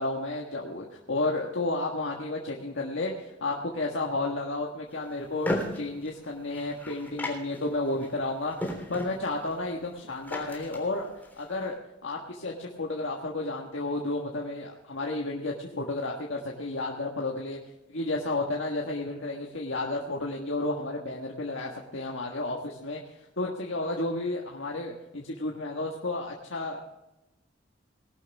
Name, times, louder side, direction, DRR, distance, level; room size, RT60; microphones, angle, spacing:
voice 1, 0.0-3.1 3.4-11.1 11.4-11.8 12.0-17.6 17.9-23.0 23.4-26.8, left 2 dB, 80° left, -1 dB, 1.6 m, -32 dB
sound 1, 4.9-11.7, left 1 dB, 10° left, 3.5 m, -37 dB
19.5 x 11.5 x 3.5 m, 0.96 s
head